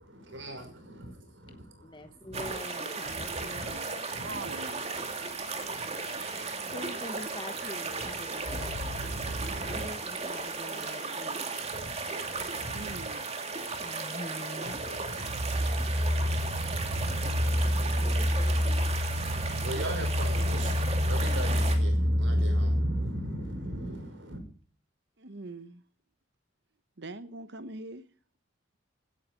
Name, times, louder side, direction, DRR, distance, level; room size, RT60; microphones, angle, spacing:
voice 1, 0.1-2.4 3.0-4.6 4.9-6.7 7.6-10.0 10.3-10.5 10.9-11.0 11.5-13.2 13.6-14.0 14.6-24.4, equal, 80° right, 6.0 m, -31 dB
voice 2, 1.8-3.8 6.0-6.4 6.7-8.9 9.7-11.7 13.8-14.8 18.0-19.0, left 1 dB, 25° left, 1.2 m, -44 dB
sound 1, 2.3-21.8, right 4 dB, 35° right, 2.6 m, -36 dB
voice 3, 3.5-4.8 12.7-13.3 25.2-25.8 27.0-28.0, right 2 dB, 60° right, 0.9 m, -42 dB
16.5 x 12.0 x 5.0 m
head